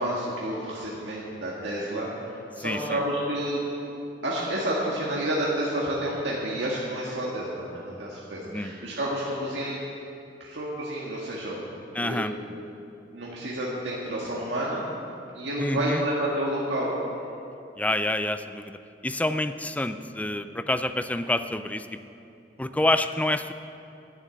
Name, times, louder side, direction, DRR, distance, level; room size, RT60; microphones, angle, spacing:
voice 1, 0.0-3.6 4.2-9.8 10.4-11.6 12.0-12.4 13.1-14.8 15.3-16.9, right 1 dB, 80° right, -5 dB, 1.8 m, -30 dB
voice 2, 2.6-3.0 8.5-8.7 11.9-12.3 15.6-16.0 17.8-18.8 19.0-22.0 22.6-23.5, left 1 dB, 10° left, 10 dB, 0.4 m, -27 dB
10.5 x 7.4 x 9.3 m, 2.6 s
head